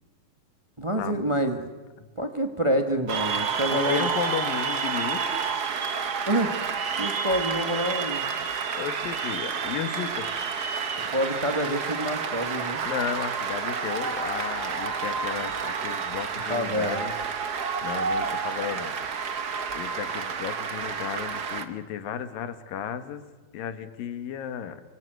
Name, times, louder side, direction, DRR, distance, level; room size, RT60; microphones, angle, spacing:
voice 1, 0.8-1.7 2.1-4.1 6.3-6.5 7.0-8.2 11.1-12.8 16.5-17.0, equal, 35° right, 6 dB, 0.5 m, -27 dB
Cheering / Applause, 3.1-21.6, right 6 dB, 75° right, 0.8 m, -30 dB
voice 2, 3.7-5.5 8.7-10.3 12.8-17.1 17.8-19.0 19.8-23.2 23.5-24.8, left 9 dB, 75° left, 11 dB, 3.1 m, -34 dB
sound 1, 9.0-13.7, right 2 dB, 55° right, 8.5 m, -48 dB
26.5 x 25.5 x 7.8 m, 1.2 s
omnidirectional pair, 4.1 m